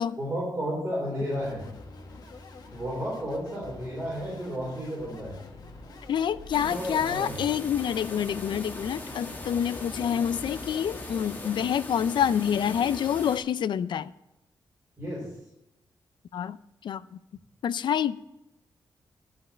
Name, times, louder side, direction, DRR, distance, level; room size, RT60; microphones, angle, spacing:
voice 1, 0.2-1.6 2.7-5.3 6.6-7.4 15.0-15.3, equal, 20° right, 3.8 m, -32 dB
sound 1, 1.3-11.5, left 3 dB, 55° left, 1.5 m, -46 dB
voice 2, 6.1-14.1 16.3-16.6 16.8-17.0 17.6-18.2, left 9 dB, 80° left, 0.4 m, -27 dB
sound 2, 6.5-13.4, left 2 dB, 25° left, 1.4 m, -39 dB
11.5 x 5.2 x 8.6 m
wide cardioid pair, 170°, 8 cm